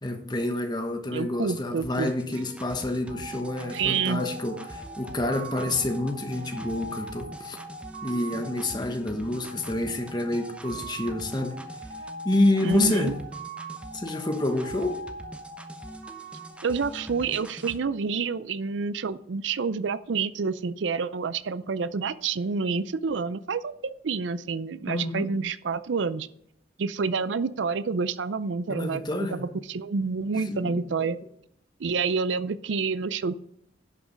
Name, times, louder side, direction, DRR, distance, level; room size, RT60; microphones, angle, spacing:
voice 1, 0.0-7.6 8.0-11.6 12.2-13.1 13.9-15.0 24.9-25.3 28.7-29.5 30.5-31.1, left 2 dB, 25° left, 1.1 m, -28 dB
voice 2, 1.1-2.1 3.7-4.2 12.6-13.1 16.6-26.3 26.8-29.0 29.3-31.2 31.8-33.4, right 5 dB, 85° right, 0.5 m, -28 dB
sound 1, 1.8-17.8, right 1 dB, 5° right, 0.8 m, -44 dB
sound 2, 3.1-17.5, right 2 dB, 40° right, 1.0 m, -42 dB
11.0 x 6.1 x 5.3 m
head